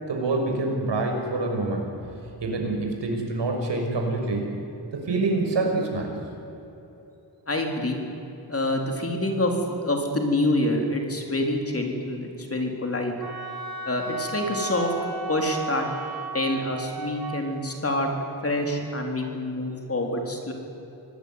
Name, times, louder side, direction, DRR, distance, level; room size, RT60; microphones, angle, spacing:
voice 1, 0.1-1.9 2.4-4.5 4.9-6.1, right 2 dB, 75° right, 2 dB, 5.9 m, -26 dB
voice 2, 7.5-8.0 8.5-9.5 9.8-13.1 13.9-14.9 15.3-15.8 16.3-18.1 18.4-20.5, left 1 dB, 30° left, 2 dB, 4.0 m, -26 dB
Wind instrument woodwind instrument, 13.2-17.4, right 3 dB, 55° right, 4.2 m, -34 dB
26.0 x 18.5 x 9.7 m, 2.9 s
wide cardioid pair, 125°, 43 cm